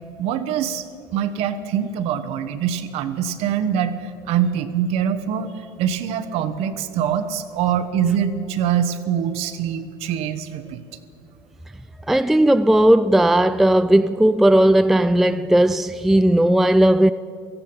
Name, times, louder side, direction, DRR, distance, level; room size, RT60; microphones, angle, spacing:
voice 1, 0.2-0.8 1.1-5.5 5.8-10.8, right 8 dB, 55° right, 1.0 m, -24 dB
voice 2, 12.1-17.1, right 1 dB, ahead, 0.3 m, -16 dB
17.5 x 14.5 x 5.4 m
hypercardioid pair, 75°, 13 cm